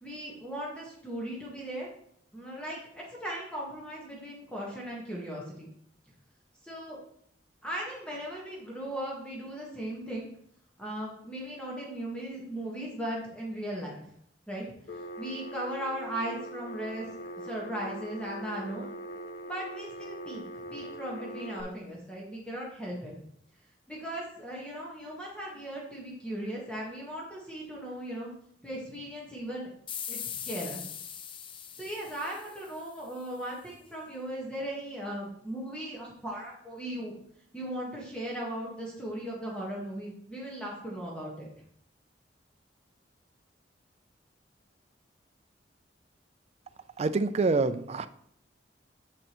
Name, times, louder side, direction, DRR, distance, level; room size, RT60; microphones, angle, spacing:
voice 1, 0.0-1.9 2.3-5.7 6.6-7.0 7.6-10.2 10.8-14.0 14.5-14.6 15.2-17.1 17.4-18.9 19.5-20.4 20.7-23.1 23.9-28.3 28.6-29.7 30.1-30.8 31.8-37.1 37.5-41.5, right 1 dB, 5° left, -4 dB, 1.4 m, -37 dB
Telephone, 14.9-21.6, right 1 dB, 60° left, 0.7 m, -41 dB
sound 1, 29.9-33.2, left 8 dB, 30° left, 0.5 m, -40 dB
voice 2, 47.0-48.1, right 3 dB, 35° right, 12 dB, 0.4 m, -26 dB
7.4 x 6.6 x 3.0 m, 0.67 s
head